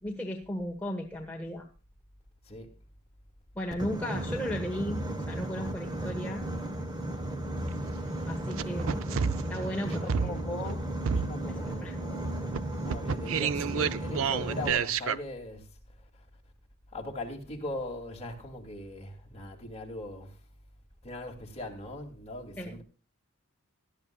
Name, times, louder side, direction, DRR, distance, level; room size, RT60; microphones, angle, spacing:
voice 1, 0.0-1.7 3.5-6.4 8.3-9.1 9.5-10.3 11.5-12.1 22.6-22.8, equal, 5° left, 1.3 m, -36 dB
Boat Water vehicle, 3.7-14.7, right 1 dB, 20° right, 1.2 m, -35 dB
sound 1, 7.6-7.7 8.5-10.8 11.1-11.7 12.1-15.2, right 6 dB, 65° right, 0.5 m, -30 dB
voice 2, 9.9-10.9 11.1-15.7 16.9-20.4 21.0-22.8, left 1 dB, 30° left, 2.5 m, -40 dB
18.0 x 12.0 x 2.4 m
head